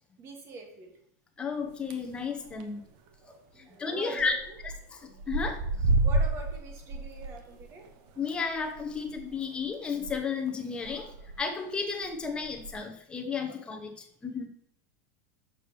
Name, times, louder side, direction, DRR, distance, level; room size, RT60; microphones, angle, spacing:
voice 1, 0.2-1.0 3.5-4.6 6.0-7.9, right 4 dB, 30° right, 3 dB, 1.7 m, -44 dB
voice 2, 1.4-2.8 3.2-4.3 4.9-5.9 8.2-14.5, left 5 dB, 10° left, 3 dB, 1.0 m, -33 dB
sound 1, 1.7-2.2 2.5-2.8 3.1-3.2 3.3-3.4 4.2-4.8 5.0-10.1 10.5-10.6 10.9-11.4 12.0-12.7, right 2 dB, 45° right, 1.1 m, -30 dB
6.9 x 5.2 x 6.8 m, 0.71 s
supercardioid pair, 165°, 10 cm